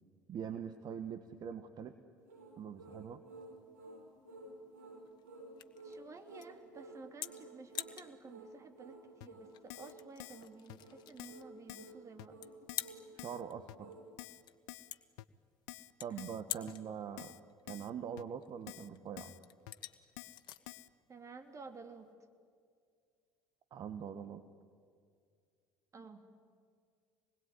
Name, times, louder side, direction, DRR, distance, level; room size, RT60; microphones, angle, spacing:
voice 1, 0.3-1.9 2.6-3.2 13.1-13.9 16.0-17.3 17.7-19.3 23.7-24.4, right 8 dB, 50° right, 9 dB, 1.5 m, -43 dB
sound 1, 2.2-14.1, right 2 dB, 85° right, 5.2 m, -53 dB
sound 2, 3.3-22.1, left 12 dB, 55° left, 1.4 m, -49 dB
voice 2, 5.8-12.4 16.1-16.2 16.5-16.7 21.1-22.1 25.9-26.3, right 4 dB, 35° right, 7 dB, 3.1 m, -53 dB
Keyboard (musical), 9.2-9.3 9.7-9.9 10.2-10.4 10.7-10.8 11.2-11.4 11.7-11.9 12.2-12.3 12.7-12.9 13.2-13.4 13.7-13.8 14.2-14.4 14.7-14.9 15.2-15.3 15.7-15.9 16.2-16.4 16.7-16.8 17.2-17.4 17.7-17.9 18.2-18.3 18.7-18.9 19.2-19.4 19.7-19.8 20.2-20.4 20.7-20.9, left 17 dB, 75° left, 0.7 m, -49 dB
26.5 x 21.0 x 9.8 m, 2.1 s
hypercardioid pair, 70°, 9 cm